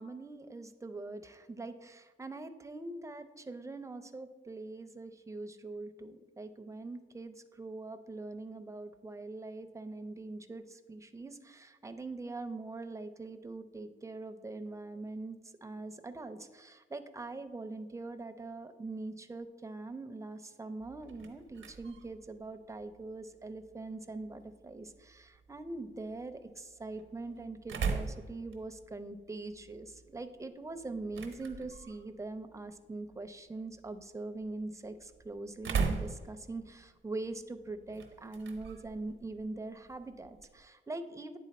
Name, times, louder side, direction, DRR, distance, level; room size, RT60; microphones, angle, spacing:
voice 1, 0.0-41.4, right 2 dB, 15° right, 9 dB, 0.5 m, -43 dB
sound 1, 20.8-40.7, right 5 dB, 90° right, 0.7 m, -42 dB
9.2 x 3.7 x 4.1 m, 1.3 s
cardioid pair, 70°, 20 cm